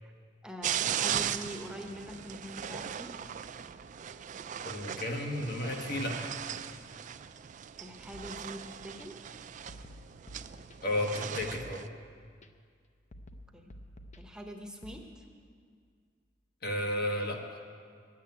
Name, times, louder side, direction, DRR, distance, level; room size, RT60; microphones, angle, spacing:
voice 1, 0.4-3.1 7.8-9.1 13.5-13.7 14.2-15.2, equal, 5° right, 2 dB, 0.8 m, -44 dB
sound 1, 0.6-11.9, right 9 dB, 40° right, 0.3 m, -38 dB
voice 2, 4.6-6.2 10.8-11.8 16.6-17.4, left 1 dB, 60° left, 2 dB, 1.4 m, -32 dB
sound 2, 8.1-9.0 9.7-11.0 11.4-12.5 13.1-15.0, left 1 dB, 40° left, 0.6 m, -52 dB
10.5 x 8.5 x 9.4 m, 2.1 s
head